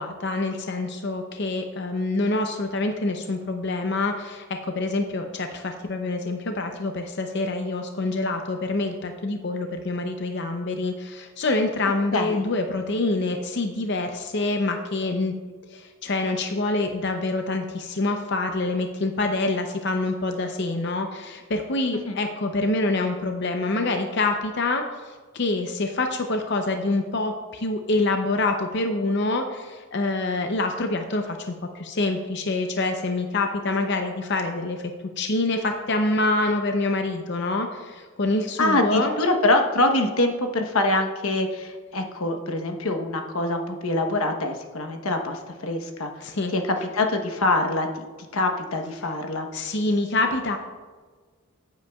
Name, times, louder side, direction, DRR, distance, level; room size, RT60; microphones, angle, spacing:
voice 1, 0.0-15.4 15.7-34.9 35.2-39.2 46.2-46.5 49.5-50.6, left 2 dB, 55° left, 5 dB, 0.6 m, -26 dB
voice 2, 12.1-12.4 22.0-22.1 38.6-46.1 46.5-47.9 48.3-49.5, left 2 dB, 90° left, 4 dB, 1.1 m, -24 dB
14.5 x 8.2 x 2.3 m, 1.5 s
head